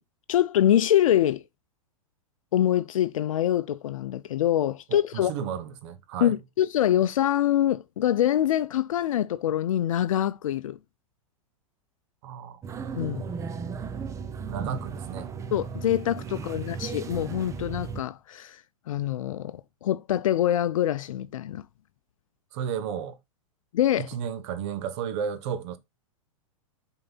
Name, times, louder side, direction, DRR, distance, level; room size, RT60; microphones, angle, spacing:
voice 1, 0.3-1.4 2.5-5.3 6.2-10.8 13.0-13.2 15.5-18.6 18.9-21.6 23.7-24.1, left 11 dB, 75° left, 0.5 m, -25 dB
voice 2, 4.9-6.4 12.2-12.6 14.4-15.3 16.4-16.8 22.5-23.2 24.0-25.8, right 8 dB, 55° right, 1.1 m, -33 dB
sound 1, 12.6-18.0, right 6 dB, 15° right, 0.5 m, -35 dB
7.7 x 4.0 x 4.0 m
hypercardioid pair, 115°, 18 cm